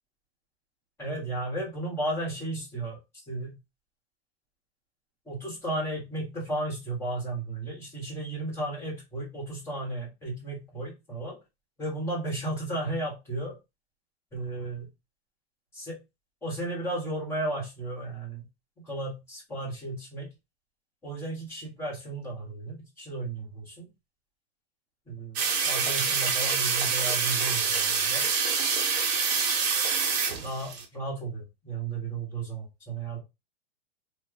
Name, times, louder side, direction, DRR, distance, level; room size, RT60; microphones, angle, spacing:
voice 1, 1.0-3.0 3.3-3.6 5.3-11.4 11.8-13.6 14.3-14.9 15.7-16.0 16.4-18.5 18.8-20.3 21.0-23.9 25.1-28.3 30.4-33.2, right 2 dB, 10° left, -4 dB, 1.2 m, -34 dB
sound 1, 25.4-30.8, right 5 dB, 40° right, 0.8 m, -26 dB
3.0 x 2.2 x 3.8 m, 0.23 s
supercardioid pair, 165°, 31 cm